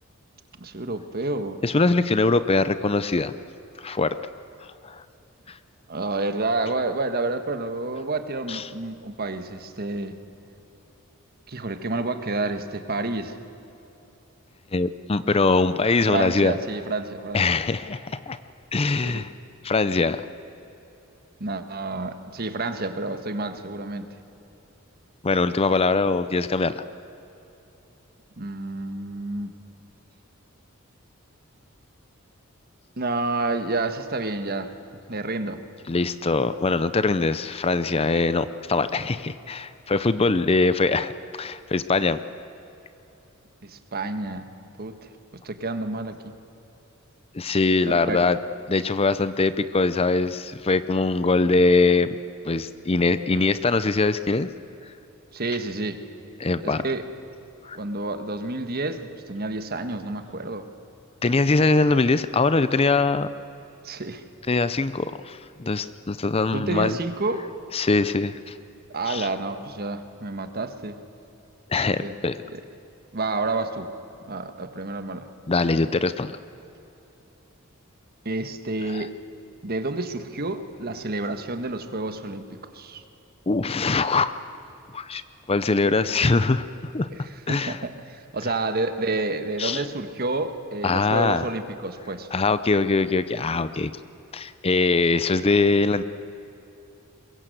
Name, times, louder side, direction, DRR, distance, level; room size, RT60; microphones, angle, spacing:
voice 1, 0.6-1.6 5.9-10.2 11.5-13.3 16.1-17.4 19.0-19.2 21.4-24.1 28.4-29.5 33.0-34.7 35.1-35.6 43.6-45.0 45.3-46.4 47.9-48.2 55.3-56.0 56.6-57.0 57.7-60.7 63.8-64.2 66.5-67.4 68.9-71.0 72.0-72.1 72.5-72.6 73.1-73.9 74.3-75.3 78.2-79.1 79.6-83.0 87.1-87.2 87.7-92.3, right 2 dB, 45° right, 8 dB, 1.5 m, -29 dB
voice 2, 1.6-3.3 3.8-4.2 4.8-5.0 5.5-5.6 8.5-8.6 14.7-16.5 17.3-18.4 18.7-19.3 19.6-20.2 25.2-26.8 35.9-41.1 41.4-42.2 47.3-48.4 48.7-52.1 52.4-54.5 56.4-56.8 57.6-57.8 61.2-63.3 64.5-67.0 67.7-68.5 69.1-69.3 71.7-72.4 75.5-76.4 78.9-79.1 83.5-84.3 84.9-85.2 85.5-87.1 87.5-87.8 89.6-89.8 90.8-91.5 92.3-93.9 94.3-96.0, left 3 dB, 30° left, 13 dB, 0.6 m, -22 dB
23.0 x 21.5 x 7.8 m, 2.9 s
head